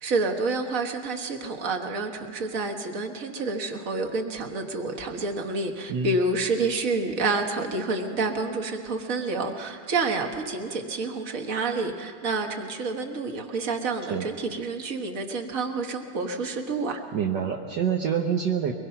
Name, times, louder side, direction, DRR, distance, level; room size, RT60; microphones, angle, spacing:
voice 1, 0.0-17.0, right 3 dB, 45° right, 4 dB, 1.8 m, -28 dB
voice 2, 17.1-18.7, right 7 dB, 65° right, 1 dB, 1.6 m, -26 dB
23.5 x 21.0 x 5.8 m, 2.2 s
omnidirectional pair, 2.1 m